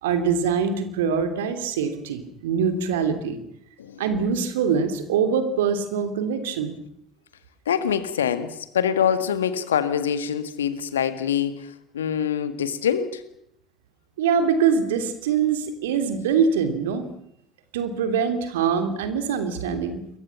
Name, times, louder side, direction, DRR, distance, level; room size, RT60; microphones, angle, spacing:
voice 1, 0.0-3.4 4.0-6.7 14.2-17.1 17.7-20.0, right 6 dB, 75° right, 2.8 m, -23 dB
voice 2, 7.7-13.2, left 8 dB, 80° left, 1.7 m, -25 dB
27.5 x 23.0 x 5.9 m
figure-of-eight pair, 60°, 0 cm